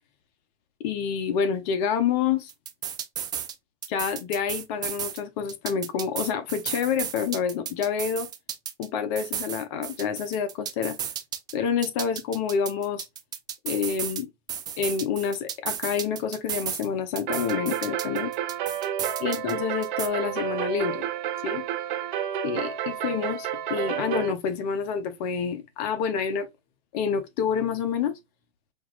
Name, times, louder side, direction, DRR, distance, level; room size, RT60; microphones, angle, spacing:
voice 1, 0.8-2.5 3.9-8.3 8.8-11.0 11.5-13.0 13.6-14.3 14.8-18.3 19.2-21.1 21.4-21.7 22.4-26.5 26.9-28.1, left 7 dB, 40° left, 0.9 m, -28 dB
sound 1, 2.5-3.5 3.8-5.2 5.5-8.9 9.2-11.5 11.8-14.2 14.5-16.9 17.2-19.5 19.8-20.1, right 9 dB, 15° right, 0.4 m, -34 dB
sound 2, 17.3-24.3, right 10 dB, 50° right, 0.8 m, -30 dB
5.6 x 2.9 x 2.4 m
hypercardioid pair, 120°, 32 cm